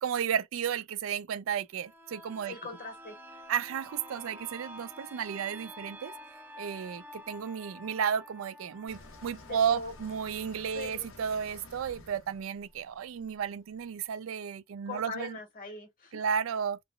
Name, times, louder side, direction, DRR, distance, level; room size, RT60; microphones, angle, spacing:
voice 1, 0.0-2.5 3.5-6.1 6.6-15.4 16.1-16.8, right 7 dB, 85° right, 0.4 m, -33 dB
sound 1, 1.7-11.3 11.7-11.8, equal, 10° right, 0.5 m, -49 dB
voice 2, 2.5-3.2 9.4-9.9 10.7-11.1 14.8-16.2, left 4 dB, 45° left, 1.2 m, -41 dB
sound 2, 8.9-13.8, left 3 dB, 70° left, 0.9 m, -52 dB
3.1 x 2.4 x 2.3 m
head